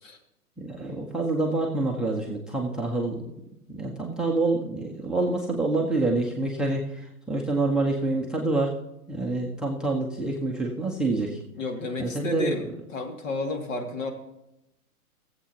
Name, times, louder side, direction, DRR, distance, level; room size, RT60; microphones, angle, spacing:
voice 1, 0.6-3.2 3.7-6.9 7.3-8.7 9.1-11.4 12.0-12.5, right 2 dB, ahead, 0 dB, 0.6 m, -27 dB
voice 2, 11.6-12.6 12.9-14.1, left 2 dB, 55° left, 3 dB, 2.4 m, -31 dB
19.5 x 7.6 x 2.9 m, 0.87 s
hypercardioid pair, 125°, 45 cm